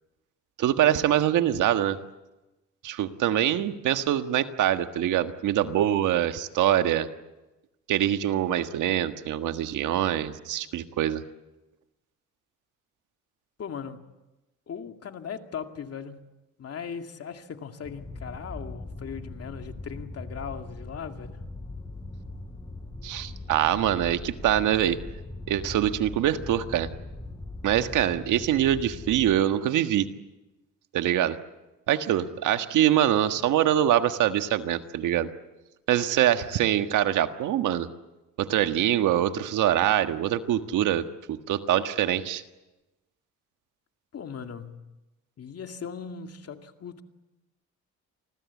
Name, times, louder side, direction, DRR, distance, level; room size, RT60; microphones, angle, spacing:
voice 1, 0.6-2.0 2.8-7.1 7.9-11.2 23.0-25.0 25.5-26.9 27.6-30.1 30.9-31.4 31.9-35.3 35.9-37.9 38.4-42.4, right 11 dB, 85° right, 1.6 m, -24 dB
voice 2, 13.6-14.1 14.7-16.2 16.6-21.4 44.1-44.9 45.4-47.0, left 7 dB, 55° left, 2.4 m, -38 dB
sound 1, 17.8-29.4, left 2 dB, 15° left, 6.5 m, -40 dB
28.5 x 21.0 x 8.4 m
cardioid pair, 90°, 30 cm